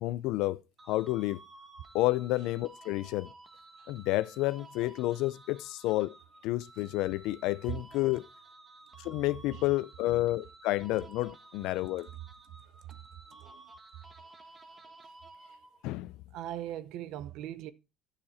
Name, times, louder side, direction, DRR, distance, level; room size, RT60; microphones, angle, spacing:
voice 1, 0.0-0.6 0.9-1.4 1.9-3.3 3.9-6.1 6.4-8.2 9.0-12.1 15.8-16.1, left 17 dB, 75° left, 0.4 m, -30 dB
sound 1, 0.8-16.0, right 2 dB, 25° right, 1.5 m, -54 dB
voice 2, 13.3-13.6 16.3-17.7, right 12 dB, 70° right, 0.6 m, -40 dB
10.0 x 6.8 x 4.1 m
supercardioid pair, 95°, 0 cm